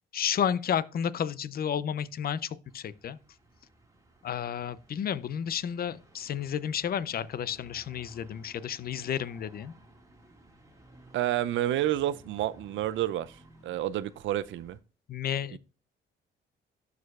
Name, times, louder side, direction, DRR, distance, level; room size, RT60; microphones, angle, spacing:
voice 1, 0.1-3.2 4.2-9.7 15.1-15.6, left 8 dB, 50° left, 0.6 m, -31 dB
sound 1, 2.6-14.8, right 1 dB, 15° right, 2.0 m, -56 dB
voice 2, 11.1-13.3 13.6-14.8 15.5-15.6, right 13 dB, 75° right, 0.5 m, -29 dB
12.5 x 4.8 x 2.4 m
cardioid pair, 90°, 20 cm